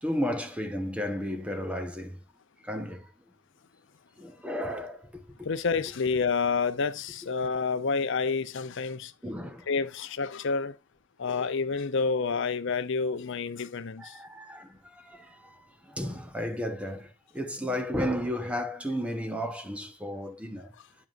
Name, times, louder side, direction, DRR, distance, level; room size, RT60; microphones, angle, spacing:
voice 1, 0.0-2.2 2.6-3.1 4.2-5.3 9.2-9.7 14.0-20.7, equal, 5° right, 1.1 m, -33 dB
voice 2, 5.4-9.1 9.7-10.7 11.2-14.2, left 4 dB, 65° left, 0.6 m, -29 dB
9.1 x 7.3 x 2.5 m
head